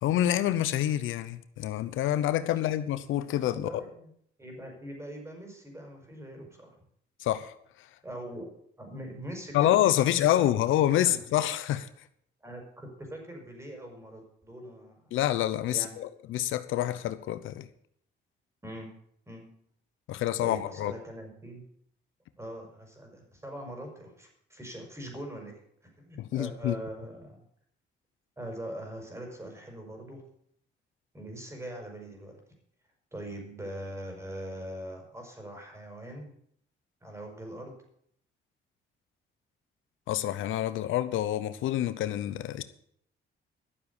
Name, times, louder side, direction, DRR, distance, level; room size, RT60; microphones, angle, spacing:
voice 1, 0.0-3.7 7.2-7.5 9.5-11.9 15.1-17.7 20.1-20.9 26.2-26.7 40.1-42.6, left 12 dB, 85° left, 13 dB, 0.8 m, -27 dB
voice 2, 3.7-4.1 4.4-6.7 8.0-10.0 10.3-10.4 10.7-11.2 12.4-15.1 15.7-16.0 18.6-19.0 19.3-19.5 20.4-21.6 22.4-25.6 26.0-27.4 28.4-30.2 31.1-32.4 33.1-36.4 37.0-37.8, right 1 dB, 15° right, 2 dB, 5.3 m, -42 dB
12.5 x 7.2 x 8.5 m, 0.67 s
cardioid pair, 90°, 20 cm